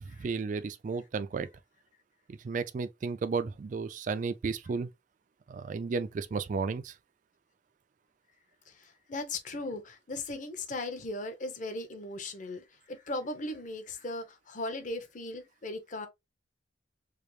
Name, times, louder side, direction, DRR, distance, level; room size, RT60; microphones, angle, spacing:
voice 1, 0.0-1.5 2.3-4.9 5.5-6.9, right 4 dB, 45° right, 0.3 m, -33 dB
voice 2, 8.7-16.1, left 2 dB, 45° left, 0.8 m, -38 dB
4.9 x 2.0 x 3.1 m
head